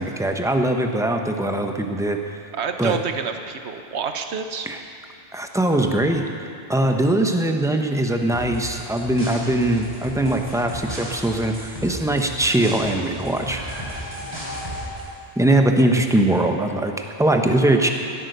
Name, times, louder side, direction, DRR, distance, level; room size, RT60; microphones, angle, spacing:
voice 1, 0.0-2.2 2.8-3.0 4.7-4.8 5.3-6.2 6.7-13.6 15.4-17.9, right 1 dB, 5° right, 3 dB, 0.8 m, -21 dB
voice 2, 2.5-4.7, right 6 dB, 85° right, 6 dB, 1.2 m, -28 dB
sound 1, 8.3-15.1, equal, 25° right, 3.9 m, -34 dB
17.0 x 9.0 x 6.7 m, 2.5 s
omnidirectional pair, 1.1 m